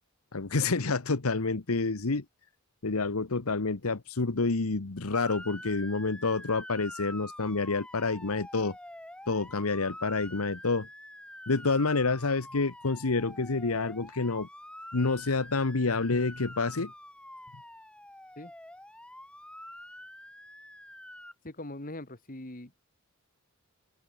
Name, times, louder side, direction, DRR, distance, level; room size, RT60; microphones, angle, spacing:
voice 1, 0.3-2.2 2.8-8.8 9.3-10.9 11.5-14.5 14.9-16.9, left 3 dB, 85° left, 1.2 m, -28 dB
Motor vehicle (road) / Siren, 5.1-21.3, left 1 dB, 5° left, 4.7 m, -46 dB
voice 2, 21.4-22.7, left 1 dB, 40° left, 2.4 m, -41 dB
open air
head